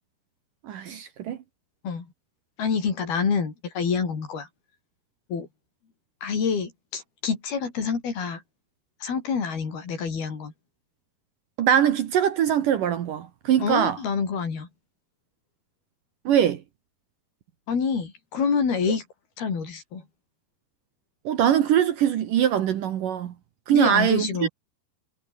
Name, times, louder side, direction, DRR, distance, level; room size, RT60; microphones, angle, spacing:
voice 1, 0.6-1.4 11.6-14.0 16.2-16.6 21.2-23.3 23.7-24.5, right 9 dB, 60° right, 2.7 m, -22 dB
voice 2, 2.6-4.5 5.3-5.5 6.2-8.4 9.0-10.5 13.6-14.7 17.7-19.0 19.4-20.0 23.7-24.5, left 5 dB, 65° left, 6.9 m, -27 dB
omnidirectional pair, 4.8 m